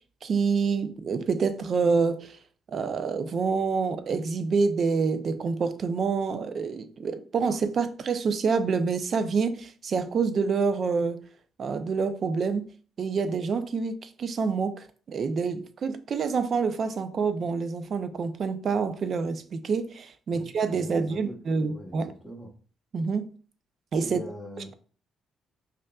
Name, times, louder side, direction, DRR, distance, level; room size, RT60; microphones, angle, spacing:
voice 1, 0.2-2.4 2.7-11.2 11.6-12.7 13.0-22.1 22.9-23.3 23.9-24.2, right 5 dB, 55° right, 0.4 m, -27 dB
voice 2, 20.3-21.4 21.7-22.5 24.0-24.7, equal, ahead, 1.1 m, -42 dB
5.3 x 2.5 x 2.3 m
cardioid pair, 90°, 0 cm